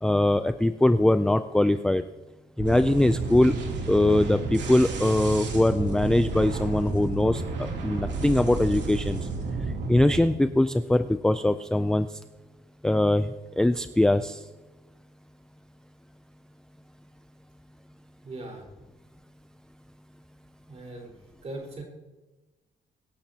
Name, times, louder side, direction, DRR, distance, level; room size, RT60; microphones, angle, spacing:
voice 1, 0.0-2.0 2.6-3.5 3.9-9.2 9.9-12.1 12.8-13.3 13.6-14.4, left 1 dB, 5° left, 9 dB, 0.3 m, -22 dB
sound 1, 2.6-10.2, right 3 dB, 75° right, 2.9 m, -31 dB
voice 2, 18.2-18.7 20.7-21.1 21.4-21.8, right 2 dB, 35° right, 1 dB, 4.5 m, -39 dB
24.0 x 11.5 x 2.8 m, 1.1 s
cardioid pair, 150°, 19 cm